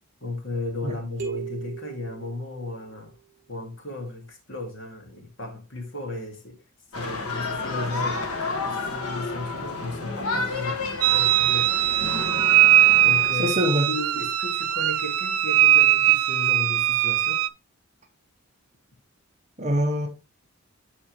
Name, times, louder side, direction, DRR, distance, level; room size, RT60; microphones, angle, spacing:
voice 1, 0.2-3.1 3.5-6.5 6.9-8.2 8.4-10.8 11.1-11.7 13.0-13.6 13.9-17.4, left 2 dB, 55° left, 2.1 m, -35 dB
sound 1, 1.2-3.1, right 8 dB, 50° right, 3.6 m, -38 dB
sound 2, 6.9-13.3, left 3 dB, 80° left, 1.5 m, -31 dB
sound 3, 11.0-17.5, right 13 dB, 80° right, 0.6 m, -20 dB
voice 2, 13.4-13.9 19.6-20.1, equal, 30° right, 1.1 m, -23 dB
11.5 x 4.3 x 3.1 m
head